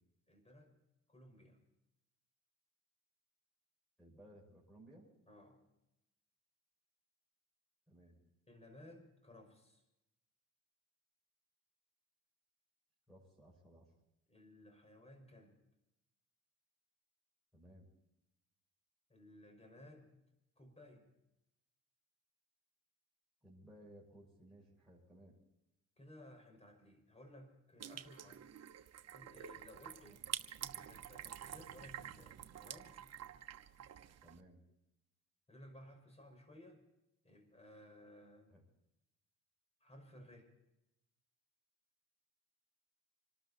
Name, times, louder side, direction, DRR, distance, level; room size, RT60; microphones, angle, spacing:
voice 1, 0.3-0.7 1.1-1.6 5.3-5.6 8.5-9.8 14.3-15.6 19.1-20.1 20.6-21.1 26.0-28.4 29.1-30.2 30.6-32.9 35.5-36.8 37.2-38.6 39.8-40.5, left 1 dB, 20° left, 6 dB, 5.6 m, -58 dB
voice 2, 4.0-5.1 7.9-8.2 13.1-13.9 17.5-17.9 23.4-25.4 34.2-34.6 38.5-38.6, right 1 dB, ahead, -5 dB, 6.3 m, -60 dB
sound 1, 27.8-34.4, right 10 dB, 55° right, 1.2 m, -48 dB
26.5 x 13.0 x 4.2 m, 0.88 s
cardioid pair, 90°, 30 cm